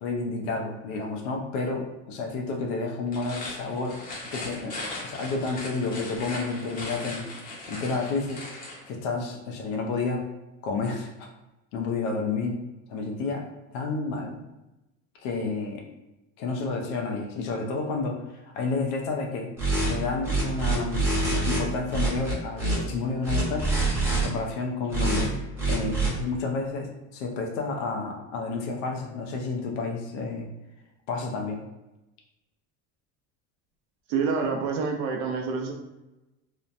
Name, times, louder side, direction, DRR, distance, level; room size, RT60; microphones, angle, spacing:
voice 1, 0.0-4.0 4.3-4.8 5.0-7.2 7.7-8.4 8.9-10.2 10.6-11.3 11.7-12.6 12.9-13.4 13.7-14.4 15.2-15.8 16.4-18.2 18.4-19.5 19.9-23.8 24.1-25.3 25.7-30.5 31.1-31.6, left 3 dB, 75° left, 1 dB, 0.6 m, -30 dB
sound 1, 3.0-8.8, left 2 dB, 25° left, 0.7 m, -38 dB
sound 2, 19.6-19.9 20.2-21.6 21.9-22.8 23.2-24.3 24.9-25.3 25.6-26.1, right 2 dB, 5° right, 0.8 m, -25 dB
voice 2, 34.1-35.7, right 5 dB, 80° right, 2 dB, 0.6 m, -27 dB
3.0 x 2.1 x 2.5 m, 0.97 s
cardioid pair, 155°, 33 cm